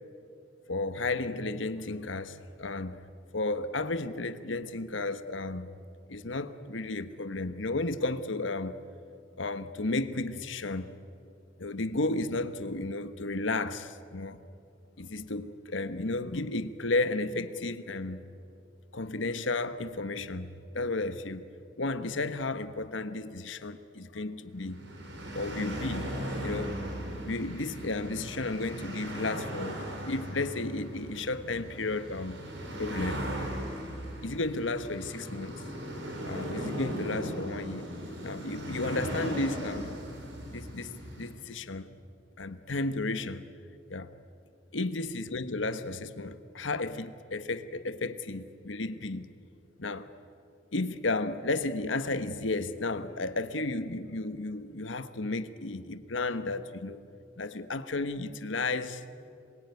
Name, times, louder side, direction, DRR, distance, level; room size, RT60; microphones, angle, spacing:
voice 1, 0.7-3.0 3.3-5.7 6.1-8.8 9.4-11.0 11.6-14.4 15.0-18.2 18.9-21.5 21.8-24.8 25.3-26.8 27.2-32.4 32.8-33.3 34.2-35.6 36.2-37.9 38.2-40.0 40.5-41.9 42.4-43.5 43.9-44.1 44.7-49.3 49.8-50.1 50.7-57.0 57.4-59.1, left 2 dB, 85° left, 1.2 m, -33 dB
sound 1, 24.5-41.3, right 1 dB, 75° right, 5.0 m, -38 dB
27.0 x 23.0 x 9.5 m
head